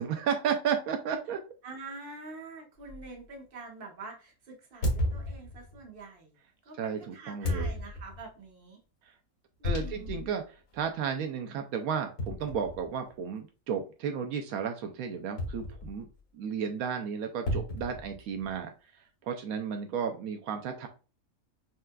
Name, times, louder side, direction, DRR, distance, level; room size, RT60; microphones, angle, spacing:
voice 1, 0.0-1.4 6.8-7.7 9.6-10.4 10.7-16.1 16.3-18.7 19.2-20.9, right 7 dB, 80° right, 6 dB, 1.0 m, -33 dB
voice 2, 1.6-6.3 6.6-8.8 9.6-10.3, right 3 dB, 45° right, 1 dB, 1.1 m, -46 dB
sound 1, 2.9-3.1 4.8-5.8 7.4-8.3 9.6-10.3 10.7-10.8 12.2-13.1 15.4-16.2 17.5-18.6, left 1 dB, 80° left, 1.8 m, -33 dB
5.6 x 2.4 x 2.2 m, 0.34 s
omnidirectional pair, 1.5 m